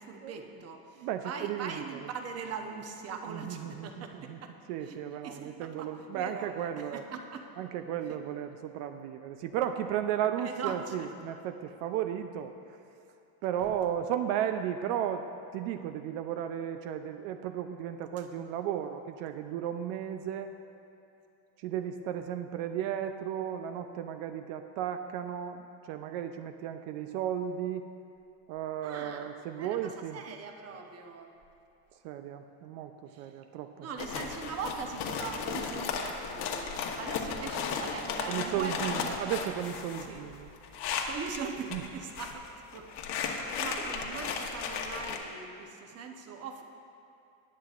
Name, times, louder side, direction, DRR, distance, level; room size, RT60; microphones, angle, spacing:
voice 1, 0.0-4.5 4.8-5.0 5.2-7.4 8.1-8.2 10.4-11.1 28.8-29.3 29.6-31.3 33.1-33.3 33.8-39.5 40.1-40.2 41.0-46.6, right 5 dB, 30° right, 4 dB, 0.9 m, -41 dB
voice 2, 1.0-2.0 3.3-4.4 4.7-7.0 7.6-12.5 13.4-15.3 15.5-20.5 21.6-27.8 28.5-30.2 32.0-33.9 38.3-40.5 41.7-41.8, right 10 dB, 75° right, 7 dB, 0.6 m, -34 dB
sound 1, 34.0-41.4 41.7-42.4 42.7-45.2, left 6 dB, 55° left, 1.3 m, -35 dB
18.5 x 9.5 x 2.5 m, 2.7 s
cardioid pair, 140°, 47 cm